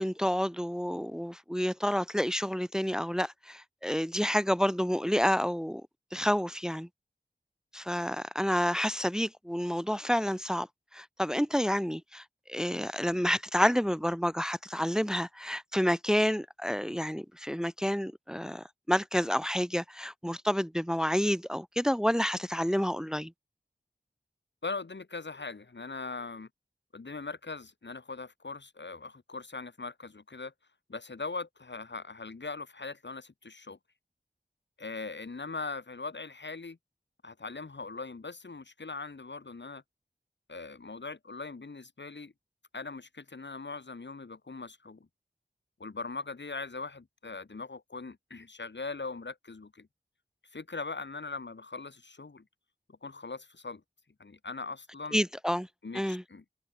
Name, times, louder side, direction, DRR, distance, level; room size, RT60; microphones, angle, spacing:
voice 1, 0.0-5.8 6.1-6.9 7.7-10.7 10.9-12.2 12.5-23.3 55.1-55.7 55.9-56.2, equal, 5° right, 0.7 m, -29 dB
voice 2, 24.6-26.5 26.9-30.5 30.9-33.8 34.8-36.8 37.2-39.8 40.5-42.3 42.7-45.1 45.8-49.9 50.5-52.4 53.0-53.8 54.2-55.2 55.8-56.4, left 3 dB, 80° left, 2.7 m, -40 dB
wide cardioid pair, 45°, 18 cm